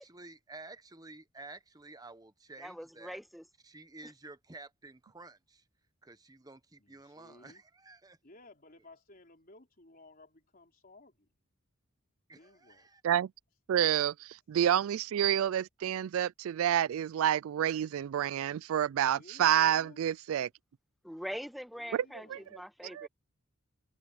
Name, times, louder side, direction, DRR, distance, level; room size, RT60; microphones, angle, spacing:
voice 1, 0.0-3.2 3.6-5.6 6.0-8.2 12.3-13.0, right 3 dB, 15° right, 1.0 m, -51 dB
voice 2, 2.6-3.4 21.0-23.1, equal, ahead, 1.4 m, -43 dB
voice 3, 6.8-7.6 8.2-11.3 12.3-12.9 19.1-20.0 21.8-22.7, left 2 dB, 40° left, 3.9 m, -57 dB
voice 4, 13.7-20.5 21.9-22.0 22.3-22.4 22.9-23.1, right 10 dB, 75° right, 0.3 m, -28 dB
head